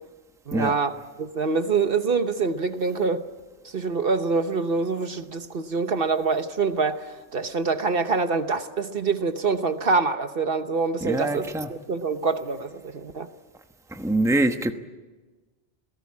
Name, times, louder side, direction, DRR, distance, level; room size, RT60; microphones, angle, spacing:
voice 1, 0.5-3.2 3.6-13.3, right 4 dB, 55° right, 1.2 m, -25 dB
voice 2, 11.0-11.7 13.9-14.7, right 2 dB, 5° right, 1.0 m, -24 dB
27.5 x 18.0 x 8.5 m
omnidirectional pair, 1.2 m